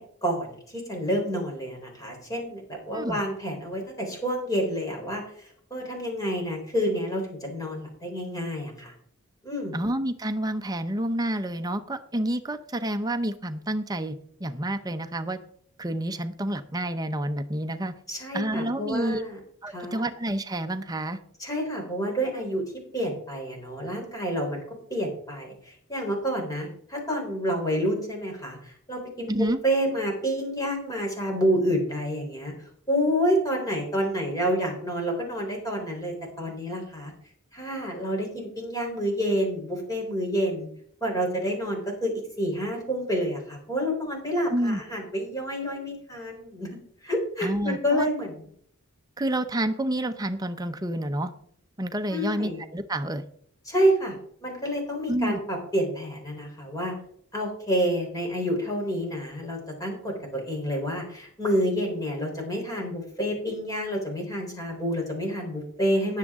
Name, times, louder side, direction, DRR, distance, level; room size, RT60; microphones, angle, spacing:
voice 1, 0.2-8.9 9.4-9.8 18.1-19.4 19.7-20.0 21.4-22.6 22.9-24.6 24.9-29.4 29.6-32.5 32.9-37.1 37.5-40.7 41.0-46.7 47.0-48.5 52.1-52.6 53.6-54.1 54.4-56.9 57.3-66.2, equal, 15° left, 0 dB, 3.8 m, -28 dB
voice 2, 9.7-14.2 14.4-15.4 15.8-17.9 18.3-19.2 19.6-21.2 29.3-29.6 44.5-44.8 47.4-48.1 49.2-51.3 51.8-53.2 55.1-55.4, right 1 dB, 20° right, 8 dB, 0.7 m, -29 dB
18.5 x 7.4 x 3.7 m, 0.62 s
head